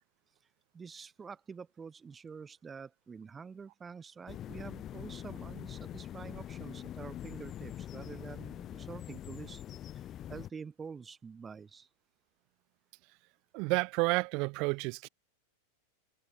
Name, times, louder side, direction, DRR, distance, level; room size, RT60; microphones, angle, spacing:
voice 1, 0.7-9.6 9.9-10.0 10.3-11.9, right 5 dB, 15° right, 4.4 m, -47 dB
sound 1, 4.3-10.5, left 11 dB, 30° left, 3.3 m, -44 dB
voice 2, 13.5-15.1, right 29 dB, 45° right, 2.1 m, -30 dB
figure-of-eight pair, 90°, 0 cm